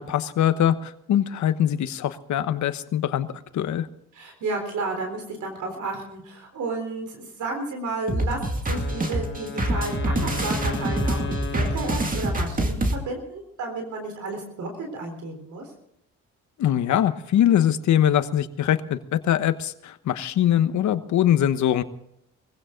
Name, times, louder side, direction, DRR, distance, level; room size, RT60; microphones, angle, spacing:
voice 1, 0.0-3.3 3.5-3.9 16.6-21.8, left 10 dB, 70° left, 12 dB, 1.2 m, -22 dB
voice 2, 4.1-15.7, right 3 dB, 70° right, 4 dB, 4.0 m, -32 dB
sound 1, 8.1-13.0, right 1 dB, 25° right, 2.3 m, -25 dB
Wind instrument woodwind instrument, 8.7-12.8, left 4 dB, 40° left, 1.7 m, -35 dB
22.0 x 16.0 x 3.9 m, 0.75 s
cardioid pair, 90°, 30 cm